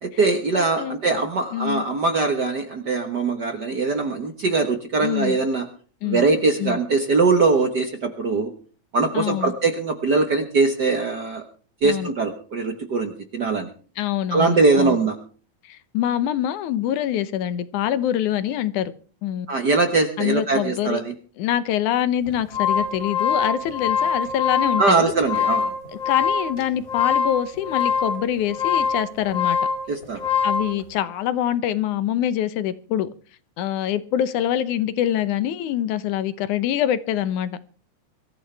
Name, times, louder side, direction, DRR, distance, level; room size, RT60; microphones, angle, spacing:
voice 1, 0.0-5.6 6.0-8.5 8.9-11.4 11.8-13.7 14.3-15.1 19.5-21.1 24.8-25.7 29.9-30.2, right 3 dB, 50° right, 1.3 m, -21 dB
voice 2, 0.6-1.2 1.5-1.9 5.0-5.4 6.0-6.2 6.6-6.8 9.1-9.5 11.8-12.1 14.0-15.0 15.7-18.9 19.2-19.5 20.2-21.0 21.4-25.1 26.1-29.6 30.4-33.1 33.6-37.6, left 11 dB, 80° left, 2.4 m, -25 dB
sound 1, 22.3-30.7, left 6 dB, 30° left, 2.8 m, -24 dB
23.5 x 14.0 x 3.4 m
omnidirectional pair, 3.4 m